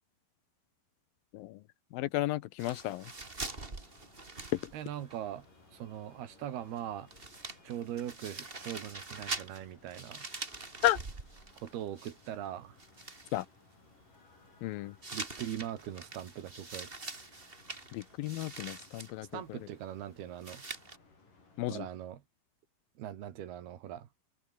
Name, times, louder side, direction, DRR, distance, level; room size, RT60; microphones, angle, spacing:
voice 1, 1.9-3.1 4.5-4.7 10.8-11.0 13.3-13.5 14.6-15.0 17.9-19.6 21.6-21.9, left 16 dB, 75° left, 2.4 m, -33 dB
sound 1, 2.6-5.2 5.4-5.5 6.8-6.9 7.1-12.5 12.8-13.5 15.0-19.1 20.4-21.0, right 3 dB, 20° right, 2.0 m, -44 dB
sound 2, 2.7-21.7, left 3 dB, 55° left, 9.8 m, -62 dB
voice 2, 4.7-5.5 5.7-7.1 7.6-10.2 11.6-12.8 15.1-16.9 19.3-20.6 21.7-22.2 23.0-24.1, right 11 dB, 80° right, 3.9 m, -41 dB
omnidirectional pair, 4.5 m